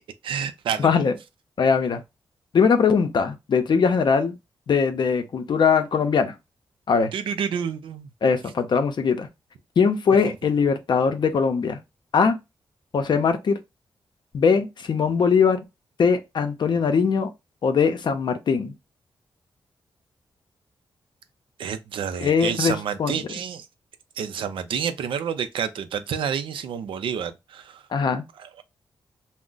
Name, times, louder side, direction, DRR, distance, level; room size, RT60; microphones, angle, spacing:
voice 1, 0.2-0.9 7.1-8.1 10.3-10.4 21.6-23.6 24.2-27.8 28.4-28.6, right 7 dB, 85° right, 0.4 m, -29 dB
voice 2, 0.8-1.1 1.6-2.0 2.5-4.4 4.7-6.3 6.9-7.1 8.2-9.3 9.8-11.8 12.1-12.4 12.9-13.6 14.3-15.6 16.0-17.3 17.6-18.7 22.2-23.2 27.9-28.2, left 5 dB, 60° left, 0.5 m, -21 dB
2.4 x 2.0 x 3.8 m
cardioid pair, 70°, 9 cm